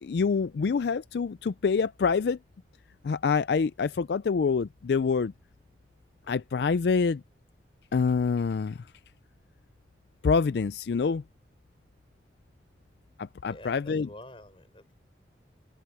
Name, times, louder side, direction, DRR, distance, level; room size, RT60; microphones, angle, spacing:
voice 1, 0.0-2.4 3.0-5.3 6.3-7.2 7.9-8.8 10.2-11.2 13.2-14.1, left 5 dB, 70° left, 0.4 m, -26 dB
voice 2, 13.5-14.9, left 1 dB, 30° left, 7.0 m, -48 dB
open air
head